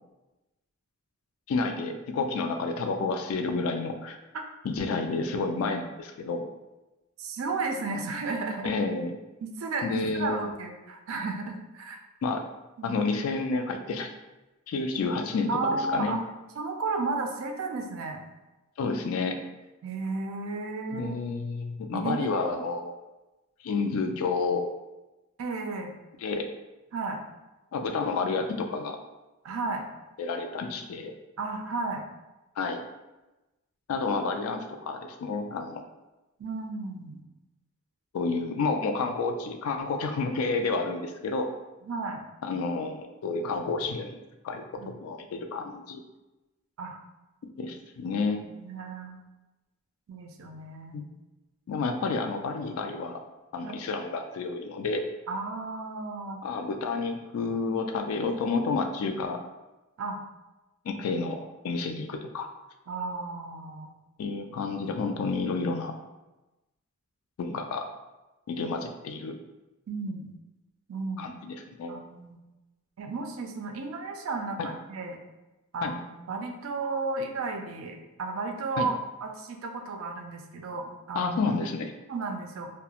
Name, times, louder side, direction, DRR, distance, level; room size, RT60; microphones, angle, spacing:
voice 1, 1.5-4.2 4.6-6.4 8.6-9.1 9.8-10.5 12.2-12.4 12.8-14.1 14.7-16.2 18.8-19.4 20.9-22.9 23.6-24.7 26.2-26.5 27.7-29.0 30.2-31.1 32.6-32.8 33.9-35.8 38.1-41.5 42.4-46.0 47.6-48.4 50.9-51.0 51.7-53.2 53.5-55.0 56.4-59.4 60.9-62.5 64.2-65.9 67.4-67.9 68.5-69.3 71.2-72.0 74.6-74.7 75.8-75.9 78.8-78.9 81.1-81.9, left 4 dB, 85° left, 5 dB, 0.3 m, -30 dB
voice 2, 7.2-8.8 9.4-12.0 12.8-13.0 15.5-16.2 16.6-18.2 19.8-21.2 21.9-22.5 25.4-25.9 26.9-27.2 29.4-29.9 31.4-32.1 36.4-37.2 41.8-42.3 44.8-44.9 46.8-47.0 48.0-48.2 48.6-49.2 50.1-51.1 52.8-52.9 53.6-53.8 55.3-56.4 60.0-60.2 62.9-63.9 69.9-70.4 70.9-71.4 71.9-72.4 73.0-75.2 75.7-81.3 82.1-82.7, right 3 dB, 75° right, 3 dB, 0.4 m, -33 dB
2.3 x 2.1 x 2.8 m, 1.0 s
head